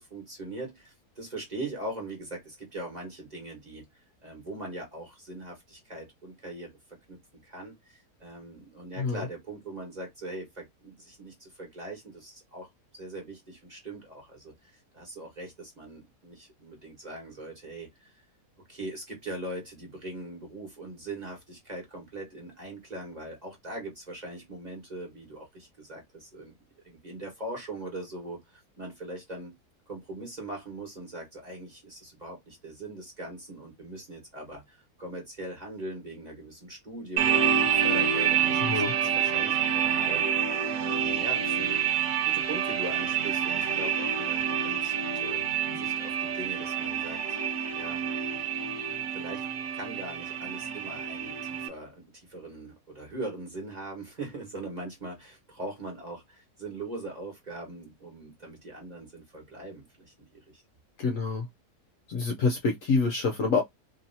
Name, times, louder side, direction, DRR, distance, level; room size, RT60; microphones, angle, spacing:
voice 1, 0.0-3.8 4.2-7.2 7.4-18.2 18.7-26.6 26.8-29.5 29.9-45.4 45.8-47.4 47.8-48.1 49.1-49.4 49.7-60.6, right 2 dB, 30° right, 1.3 m, -41 dB
sound 1, 37.2-51.7, right 8 dB, 65° right, 1.0 m, -28 dB
voice 2, 38.6-38.9 61.0-61.5 62.1-63.6, left 4 dB, 65° left, 0.9 m, -26 dB
3.0 x 2.8 x 2.6 m
omnidirectional pair, 1.7 m